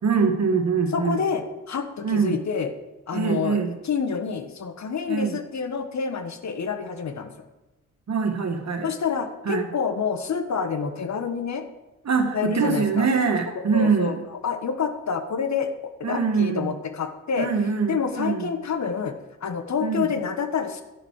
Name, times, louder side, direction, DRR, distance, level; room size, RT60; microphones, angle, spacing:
voice 1, 0.0-1.2 2.0-2.4 3.1-3.7 5.1-5.3 8.1-8.9 9.5-9.7 12.1-14.2 16.0-16.7 17.4-18.5 19.8-20.1, right 5 dB, 55° right, 5 dB, 1.8 m, -23 dB
voice 2, 0.9-2.7 3.1-7.3 8.8-11.6 12.3-13.1 13.5-15.7 16.0-17.5 17.9-19.1 19.4-20.8, left 6 dB, 60° left, 8 dB, 1.4 m, -28 dB
11.0 x 6.1 x 7.4 m, 1.1 s
cardioid pair, 65°, 32 cm